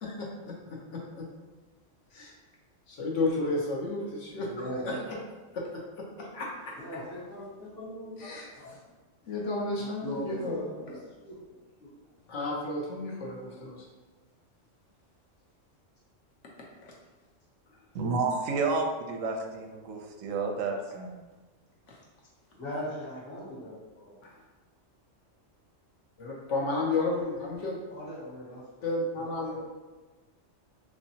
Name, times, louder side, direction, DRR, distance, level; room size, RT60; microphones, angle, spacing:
voice 1, 0.0-1.3 2.1-2.3 2.9-4.5 4.8-4.9 5.5-5.8 6.2-6.7 8.2-8.5 9.3-10.6 12.3-13.8 16.8-16.9 24.2-24.3 26.2-27.8 28.8-29.6, left 2 dB, 75° left, -2 dB, 1.1 m, -32 dB
voice 2, 4.5-5.0 6.8-8.2 8.6-8.8 9.8-11.9 22.6-24.2 27.9-28.9 29.1-29.6, equal, 50° left, -7 dB, 1.3 m, -40 dB
voice 3, 17.9-21.2, right 4 dB, 85° right, 3 dB, 1.0 m, -30 dB
3.4 x 3.0 x 2.7 m, 1.2 s
omnidirectional pair, 1.3 m